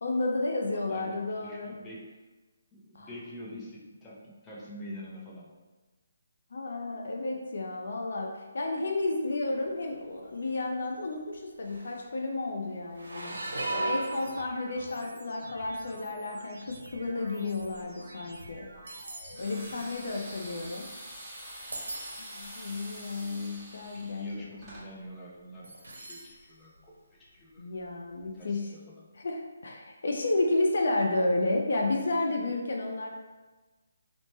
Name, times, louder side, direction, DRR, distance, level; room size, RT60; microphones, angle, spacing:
voice 1, 0.0-1.7 2.9-3.1 6.5-18.7 19.4-20.9 22.2-24.5 27.6-28.8 29.2-33.1, left 2 dB, 65° left, 2 dB, 0.4 m, -32 dB
voice 2, 0.7-2.1 2.7-5.5 19.7-19.9 21.8-22.1 23.9-25.7 25.9-27.7 28.3-29.0, equal, 15° left, -6 dB, 0.5 m, -45 dB
sound 1, 9.6-10.0 10.4-10.6 11.3-11.4 11.6-12.2 12.9-15.1 15.7-16.0 16.7-21.2 21.5-22.5 23.2-23.3 23.5-23.9 25.6-26.4 26.8-26.9 28.2-28.3, right 2 dB, 90° right, 0.6 m, -39 dB
sound 2, 14.0-19.7, right 1 dB, 60° right, 0.8 m, -49 dB
sound 3, 19.3-24.9, right 1 dB, 10° right, 1.0 m, -45 dB
2.9 x 2.0 x 3.1 m, 1.2 s
hypercardioid pair, 155°, 0 cm